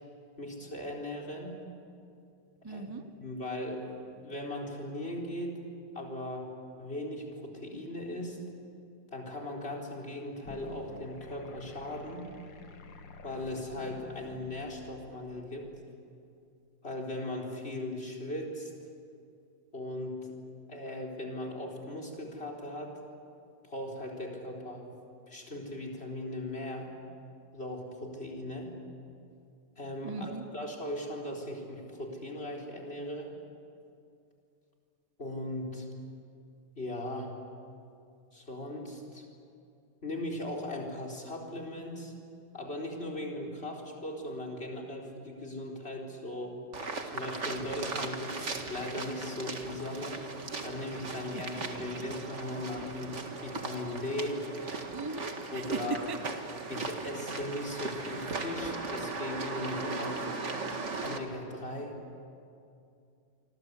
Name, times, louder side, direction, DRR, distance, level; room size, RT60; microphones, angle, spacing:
voice 1, 0.4-1.6 2.6-2.9 3.2-5.6 5.9-6.5 6.8-8.4 9.1-12.3 13.2-15.7 16.8-18.7 19.7-20.3 20.7-23.0 23.6-24.9 25.3-26.9 27.5-28.7 29.8-33.3 35.2-35.9 36.8-37.3 38.3-39.2 40.0-42.1 42.5-46.6 47.0-50.2 50.6-54.4 55.5-56.0 56.7-60.2 61.0-61.9, left 1 dB, 30° left, 2 dB, 4.3 m, -38 dB
voice 2, 2.6-3.1 30.0-30.4 51.3-51.6 54.9-56.2, right 4 dB, 20° right, 10 dB, 0.7 m, -38 dB
sound 1, 10.5-15.5, left 4 dB, 75° left, 2.2 m, -49 dB
sound 2, 46.7-61.2, right 3 dB, 40° right, 2.1 m, -38 dB
27.5 x 24.5 x 8.3 m, 2.5 s
omnidirectional pair, 2.0 m